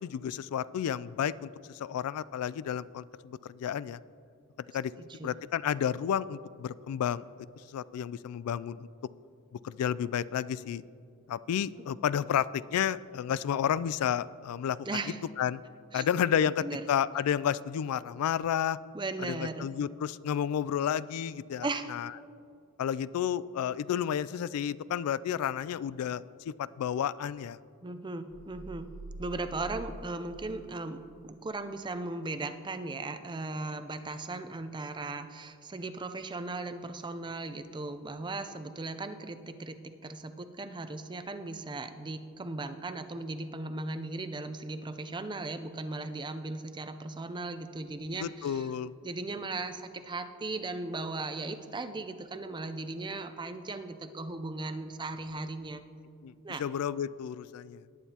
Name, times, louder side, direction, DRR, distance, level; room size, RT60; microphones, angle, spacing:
voice 1, 0.0-4.0 4.7-4.9 5.2-7.3 7.7-8.9 9.6-10.8 11.3-14.8 15.4-15.6 15.9-18.8 19.2-22.1 22.8-27.6 48.2-48.9 56.2-56.3 56.6-57.8, left 9 dB, 85° left, 17 dB, 0.3 m, -31 dB
voice 2, 5.0-5.3 14.9-15.2 15.9-16.1 16.4-16.8 18.9-19.7 21.6-21.9 27.8-28.9 29.2-48.7 49.0-55.8 56.4-56.6, right 2 dB, 20° right, 10 dB, 0.5 m, -37 dB
sound 1, 28.3-31.0, right 1 dB, 45° left, 1.0 m, -46 dB
19.0 x 9.2 x 2.9 m, 2.4 s
head